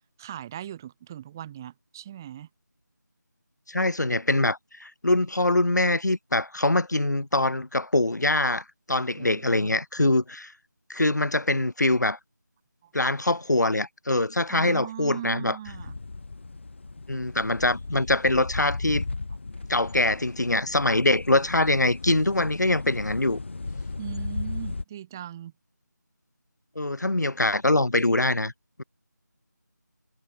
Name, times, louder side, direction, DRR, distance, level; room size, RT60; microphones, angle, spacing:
voice 1, 0.2-2.5 9.2-9.8 14.5-15.9 24.0-25.5, right 11 dB, 10° right, 2.4 m, -39 dB
voice 2, 3.7-10.5 10.9-12.2 12.9-15.6 17.1-19.0 19.7-23.4 26.7-28.5, left 2 dB, 65° left, 6.6 m, -24 dB
sound 1, 15.6-24.8, left 3 dB, 40° left, 7.4 m, -36 dB
figure-of-eight pair, 175°, 10 cm